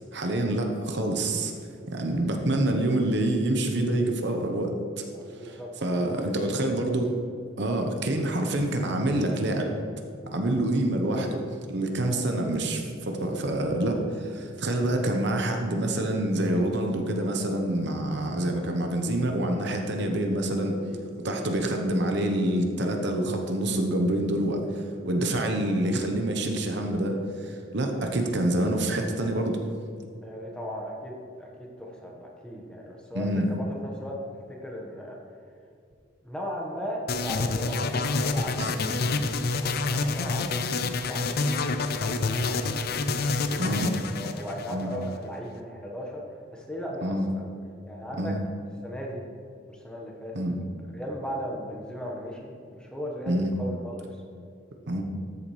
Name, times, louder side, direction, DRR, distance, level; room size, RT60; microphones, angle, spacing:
voice 1, 0.1-1.5 1.9-4.7 5.4-7.1 7.6-9.7 10.3-11.4 11.7-20.8 21.2-29.6 33.1-33.5 38.6-38.7 43.6-43.9 44.7-44.9 47.0-47.2 48.2-48.4 50.3-50.5 53.3-53.5 54.9-55.0, right 1 dB, 60° right, 3 dB, 0.9 m, -27 dB
voice 2, 5.1-6.5 6.9-7.0 12.0-12.2 20.0-20.2 20.8-21.0 30.2-31.1 31.4-35.2 36.2-46.2 46.5-47.5 47.9-48.4 48.8-49.2 49.7-50.4 50.9-54.1, equal, 5° left, -2 dB, 1.2 m, -38 dB
sound 1, 37.1-45.2, left 3 dB, 50° left, 0.5 m, -28 dB
13.5 x 7.1 x 3.2 m, 2.4 s
head